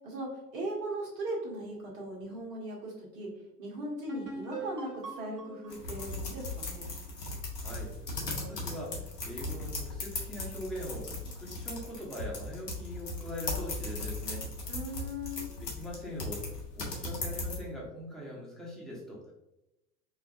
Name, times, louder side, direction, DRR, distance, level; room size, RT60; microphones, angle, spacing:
voice 1, 0.0-3.3 3.6-6.9 14.7-15.5, right 1 dB, 60° right, -2 dB, 1.4 m, -38 dB
sound 1, 4.1-7.7, right 3 dB, 80° right, 1.1 m, -43 dB
sound 2, 5.7-17.6, left 2 dB, 80° left, 1.0 m, -37 dB
voice 2, 7.6-14.5 15.6-16.4 16.7-19.3, equal, ahead, -4 dB, 1.1 m, -42 dB
4.6 x 2.4 x 2.5 m, 0.92 s
figure-of-eight pair, 75°, 47 cm